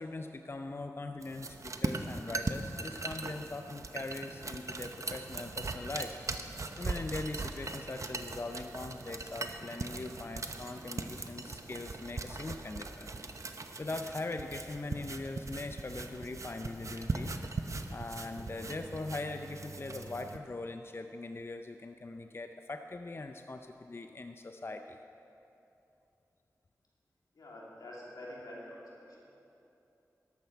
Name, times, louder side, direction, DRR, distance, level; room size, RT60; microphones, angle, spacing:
voice 1, 0.0-6.2 6.8-13.1 13.8-17.4 17.9-25.0, left 2 dB, 40° left, 6 dB, 0.5 m, -41 dB
sound 1, 1.2-20.4, right 3 dB, 55° right, 0.8 m, -40 dB
voice 2, 27.3-29.4, left 1 dB, 90° left, -4 dB, 2.6 m, -47 dB
13.5 x 11.5 x 4.6 m, 2.9 s
cardioid pair, 45°, 6 cm